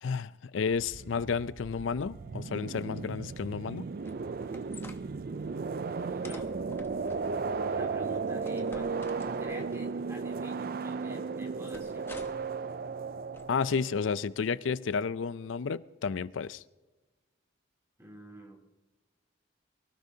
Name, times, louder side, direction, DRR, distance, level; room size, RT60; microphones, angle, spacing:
voice 1, 0.0-3.9 13.5-16.6, left 5 dB, 90° left, 0.4 m, -31 dB
sound 1, 0.7-14.1, right 4 dB, 50° right, 0.4 m, -35 dB
sound 2, 4.1-5.0 6.2-7.3 8.4-9.8 11.7-12.5 13.3-13.8, left 2 dB, 15° left, 0.9 m, -50 dB
voice 2, 5.8-6.5 7.7-9.1 9.4-12.2 18.0-18.6, equal, 15° right, 3.0 m, -49 dB
23.5 x 18.0 x 2.8 m
head